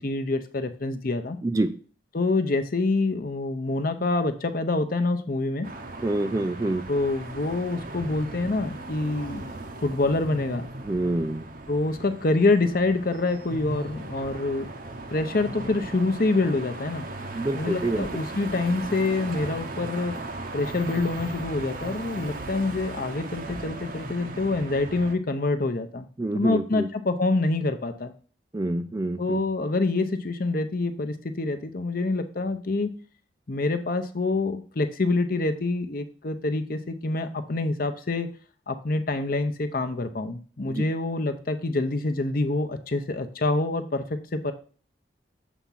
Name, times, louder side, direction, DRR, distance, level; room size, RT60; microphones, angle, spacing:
voice 1, 0.0-1.4 2.1-5.7 6.9-9.4 9.8-10.7 11.7-14.7 15.1-17.1 17.5-20.2 20.5-26.0 26.3-28.1 29.2-32.9 33.5-38.3 38.7-44.5, left 2 dB, 45° left, 8 dB, 0.7 m, -26 dB
voice 2, 1.4-1.7 6.0-6.8 10.8-11.5 17.3-18.1 26.2-26.9 28.5-29.4 40.7-40.8, right 2 dB, 20° right, 9 dB, 0.3 m, -27 dB
sound 1, 5.6-25.2, right 2 dB, 45° right, 0.7 m, -37 dB
7.1 x 3.5 x 5.6 m, 0.41 s
head